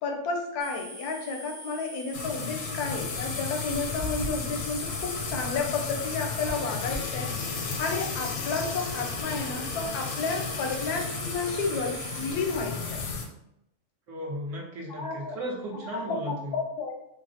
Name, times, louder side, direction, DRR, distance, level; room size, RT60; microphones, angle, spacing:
voice 1, 0.0-13.0 14.9-15.4 15.8-16.9, left 4 dB, 85° left, 2 dB, 1.2 m, -32 dB
sound 1, 0.6-12.3, right 1 dB, 30° right, 1.4 m, -43 dB
sound 2, 2.1-13.3, left 4 dB, 70° left, 0.8 m, -33 dB
voice 2, 14.1-16.6, equal, 60° right, -2 dB, 1.1 m, -35 dB
3.9 x 2.0 x 2.6 m, 0.80 s
omnidirectional pair, 1.6 m